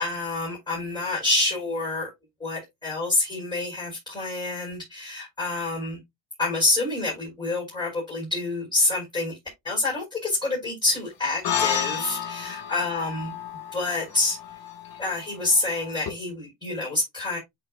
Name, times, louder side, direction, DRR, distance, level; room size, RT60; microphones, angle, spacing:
voice 1, 0.0-2.1 2.4-6.0 6.4-9.3 9.6-13.3 13.7-14.4 15.0-17.4, left 2 dB, 10° left, 4.9 m, -27 dB
sound 1, 11.4-16.1, left 8 dB, 50° left, 1.8 m, -31 dB
11.0 x 4.2 x 2.4 m
cardioid pair, 100°, 46 cm